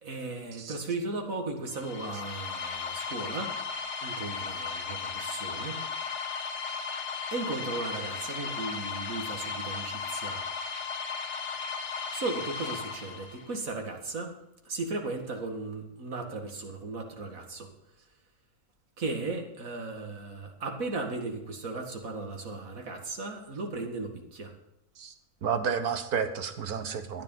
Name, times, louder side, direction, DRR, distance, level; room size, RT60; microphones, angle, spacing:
voice 1, 0.0-3.5 4.0-5.8 7.3-10.4 12.1-14.3 14.7-17.7 19.0-24.5, right 3 dB, 65° right, 4 dB, 2.4 m, -36 dB
sound 1, 1.7-13.6, left 5 dB, 55° left, 1.5 m, -36 dB
voice 2, 25.4-27.2, right 6 dB, 85° right, 8 dB, 1.7 m, -31 dB
13.5 x 10.0 x 5.6 m, 0.86 s
omnidirectional pair, 1.5 m